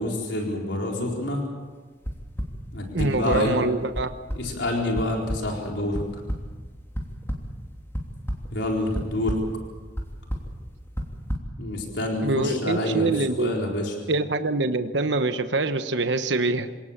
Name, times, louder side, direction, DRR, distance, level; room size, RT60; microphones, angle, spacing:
voice 1, 0.0-1.4 2.7-3.6 4.3-6.0 8.5-9.4 11.6-14.0, left 1 dB, 75° left, 0 dB, 4.3 m, -27 dB
sound 1, 2.0-2.5 3.0-3.4 3.9-4.0 4.3-4.4 5.0-5.1 5.3-5.4 5.9-6.4 6.9-7.4 7.9-8.5 8.9-9.4 10.0-10.1 10.3-10.5 11.0-11.4, equal, 15° left, 3.1 m, -28 dB
voice 2, 2.9-4.1 12.2-13.5 14.1-16.7, right 3 dB, 70° right, 9 dB, 1.1 m, -24 dB
27.0 x 18.0 x 7.3 m, 1.4 s
head